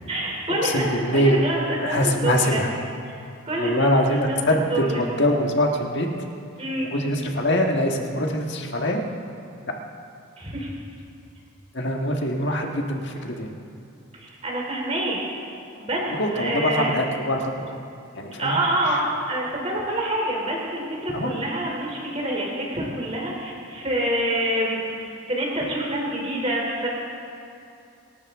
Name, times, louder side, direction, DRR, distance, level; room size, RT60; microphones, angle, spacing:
voice 1, 0.1-2.6 3.1-3.2 3.5-4.4 4.7-5.0 6.6-6.9 10.4-10.7 14.1-15.2 15.8-16.1 16.3-16.9 18.4-19.0 19.3-26.9, right 1 dB, 30° right, -2 dB, 3.2 m, -27 dB
voice 2, 0.6-1.5 1.8-2.7 3.5-6.1 6.9-9.0 11.7-13.5 16.1-17.8 18.1-19.0 21.1-21.4, equal, 55° left, 2 dB, 1.6 m, -23 dB
25.5 x 12.5 x 3.7 m, 2.6 s
head